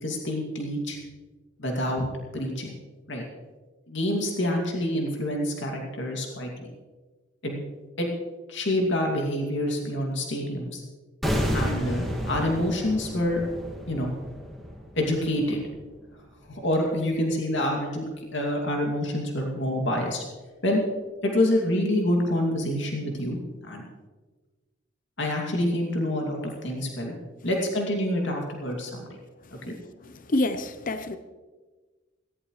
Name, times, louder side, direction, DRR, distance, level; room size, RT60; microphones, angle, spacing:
voice 1, 0.0-1.0 1.6-2.1 2.3-2.7 3.1-3.2 3.9-6.7 7.4-7.6 8.0-8.1 8.5-10.8 11.5-13.4 13.9-14.1 15.0-15.6 16.5-18.0 18.3-20.2 20.6-20.8 21.2-23.8 25.2-27.2 27.4-29.2 29.7-29.8, left 1 dB, 65° left, 0 dB, 2.6 m, -27 dB
sound 1, 11.2-16.2 16.5-16.7, equal, ahead, 2.1 m, -31 dB
voice 2, 30.3-31.2, left 1 dB, 45° left, 9 dB, 0.8 m, -27 dB
17.5 x 16.0 x 3.2 m, 1.3 s
head